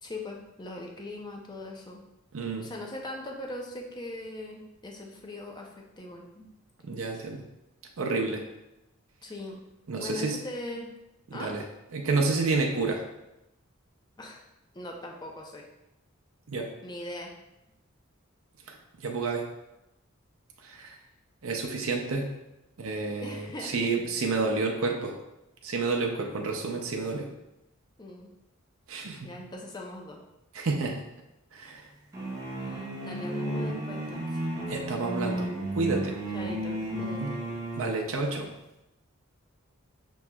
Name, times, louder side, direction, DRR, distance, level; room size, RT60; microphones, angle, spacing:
voice 1, 0.0-2.0 2.6-6.5 7.1-7.2 9.2-9.6 10.0-10.9 11.3-11.5 14.2-14.4 14.7-15.7 16.8-17.3 23.2-23.9 28.0-28.3 29.2-30.2 32.6-34.4 36.3-37.5, left 1 dB, 20° left, 0 dB, 0.5 m, -40 dB
voice 2, 2.3-2.7 6.9-7.4 8.0-8.4 9.9-10.4 11.3-11.6 11.9-13.0 16.5-16.7 18.7-19.4 20.6-21.0 21.4-22.3 22.8-25.1 25.6-27.3 28.9-29.3 30.5-31.0 31.5-31.9 34.7-35.5 35.7-36.2 37.2-37.3 37.7-38.5, right 3 dB, 75° right, 2 dB, 0.6 m, -29 dB
sound 1, 32.1-38.0, right 1 dB, 15° right, 0.9 m, -33 dB
5.9 x 3.0 x 2.2 m, 0.91 s
head